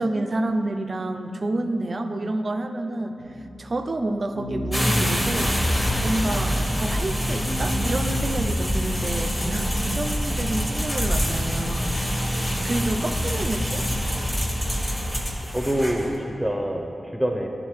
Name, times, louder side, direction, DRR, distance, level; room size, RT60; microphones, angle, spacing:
voice 1, 0.0-3.2 3.6-5.6 6.0-12.3 12.6-13.9, right 2 dB, 50° right, 6 dB, 0.4 m, -29 dB
sound 1, 3.2-9.0, left 1 dB, 50° left, 0.6 m, -33 dB
sound 2, 4.7-16.1, equal, 15° left, 1.2 m, -25 dB
voice 2, 15.5-17.5, equal, 5° right, 3 dB, 0.7 m, -26 dB
11.0 x 3.7 x 3.2 m, 2.8 s
cardioid pair, 55°, 0 cm